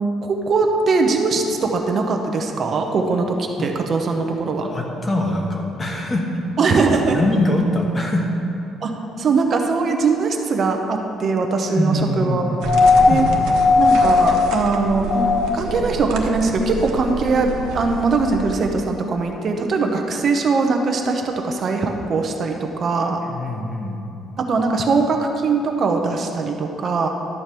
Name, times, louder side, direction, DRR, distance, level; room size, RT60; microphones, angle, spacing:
voice 1, 0.2-4.7 6.6-7.2 8.8-8.9 9.2-12.6 13.1-13.2 13.8-15.2 15.5-23.2 24.5-27.1, right 4 dB, 35° right, 3 dB, 0.9 m, -21 dB
voice 2, 4.6-6.2 6.6-6.8 7.1-8.3 11.7-12.7 13.1-13.6 23.2-24.0, left 1 dB, 15° left, 0 dB, 1.3 m, -23 dB
sound 1, 12.6-15.9 17.3-17.4, left 4 dB, 40° left, 0.5 m, -17 dB
sound 2, 12.6-18.7, right 5 dB, 90° right, 1.2 m, -30 dB
12.0 x 5.1 x 7.5 m, 2.9 s
cardioid pair, 160°, 0 cm